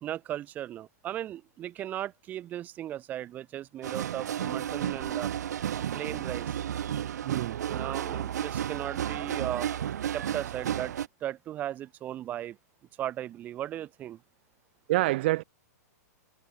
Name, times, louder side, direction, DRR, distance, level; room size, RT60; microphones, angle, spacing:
voice 1, 0.0-5.3 5.9-6.5 7.7-9.7 10.1-10.9 11.2-12.6 13.0-14.2, right 12 dB, 20° right, 3.1 m, -36 dB
sound 1, 3.8-11.1, right 10 dB, 75° right, 2.7 m, -32 dB
voice 2, 7.2-7.6 14.9-15.4, right 19 dB, 40° right, 0.9 m, -27 dB
supercardioid pair, 170°, 9 cm